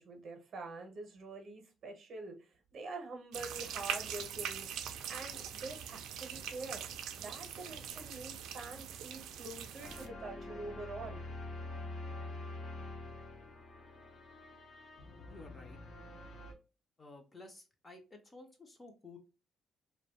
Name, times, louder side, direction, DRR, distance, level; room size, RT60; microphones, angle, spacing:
voice 1, 0.0-4.7 5.1-6.8 7.2-11.2, right 3 dB, 45° right, 0.7 m, -46 dB
sound 1, 3.3-10.1, right 8 dB, 90° right, 0.3 m, -42 dB
sound 2, 9.8-16.5, left 2 dB, 65° left, 0.6 m, -46 dB
voice 2, 15.3-15.8 17.0-19.2, left 2 dB, 20° left, 0.4 m, -53 dB
2.5 x 2.1 x 2.7 m
cardioid pair, 160°, 0 cm